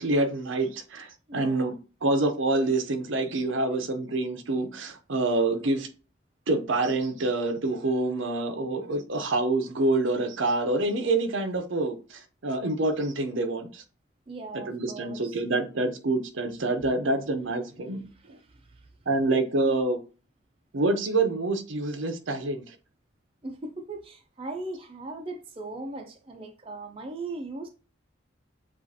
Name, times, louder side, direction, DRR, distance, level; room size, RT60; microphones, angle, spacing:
voice 1, 0.0-1.7 2.0-5.9 6.5-13.8 14.5-18.0 19.1-20.0 20.7-22.6, right 2 dB, 75° right, 0.7 m, -27 dB
voice 2, 1.3-1.8 14.3-15.4 18.0-18.9 23.4-27.7, right 2 dB, 25° right, 0.5 m, -39 dB
7.2 x 2.5 x 2.7 m
head